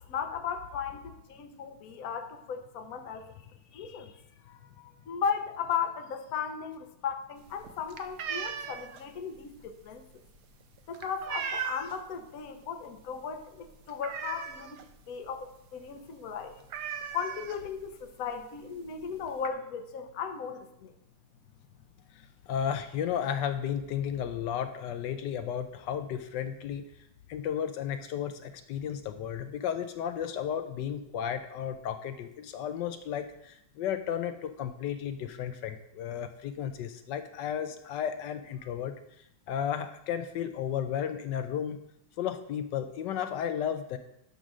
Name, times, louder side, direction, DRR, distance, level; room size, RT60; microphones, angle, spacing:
voice 1, 0.1-3.3 3.7-4.1 4.5-10.0 10.9-14.8 15.1-16.5 17.1-20.9, left 7 dB, 55° left, 7 dB, 1.2 m, -36 dB
sound 1, 7.4-12.1 12.5-12.8 13.1-13.2 13.6-14.9 15.3-15.4 15.7-15.9 16.2-16.3 16.7-17.9 18.7-18.8 19.1-19.5, right 7 dB, 65° right, 1.2 m, -38 dB
voice 2, 22.5-26.9 27.3-38.9 39.5-41.8 42.2-44.0, left 9 dB, 75° left, 9 dB, 1.2 m, -33 dB
11.0 x 3.9 x 6.1 m, 0.79 s
omnidirectional pair, 2.1 m